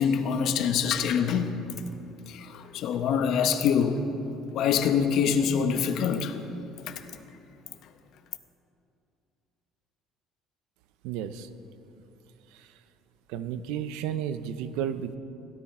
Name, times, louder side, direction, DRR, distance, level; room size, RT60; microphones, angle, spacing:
voice 1, 0.0-1.6 2.3-4.0 4.5-6.4 6.9-7.1, left 7 dB, 55° left, 7 dB, 1.0 m, -25 dB
voice 2, 11.0-11.5 12.5-12.7 13.3-15.2, right 9 dB, 90° right, 11 dB, 0.6 m, -32 dB
17.0 x 12.5 x 4.3 m, 2.8 s
cardioid pair, 145°, 0 cm